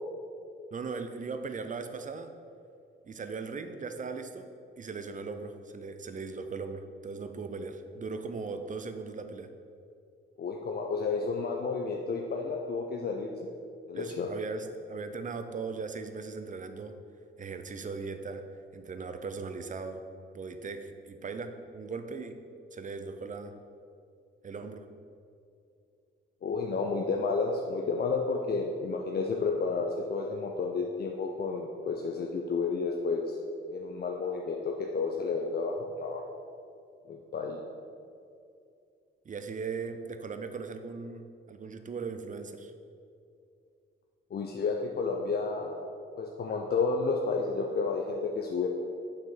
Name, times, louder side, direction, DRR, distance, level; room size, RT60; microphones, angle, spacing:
voice 1, 0.7-2.3 3.0-4.5 4.8-9.5 13.9-17.0 17.4-18.4 18.7-20.1 20.3-22.4 22.7-23.5 24.4-24.9 39.2-42.7, right 4 dB, 40° right, 8 dB, 0.6 m, -38 dB
voice 2, 10.4-13.3 13.9-14.3 26.4-33.4 33.7-36.2 37.1-37.6 44.3-45.7 46.2-48.7, left 4 dB, 50° left, 1 dB, 0.6 m, -31 dB
6.9 x 5.7 x 3.9 m, 2.5 s
cardioid pair, 75°, 21 cm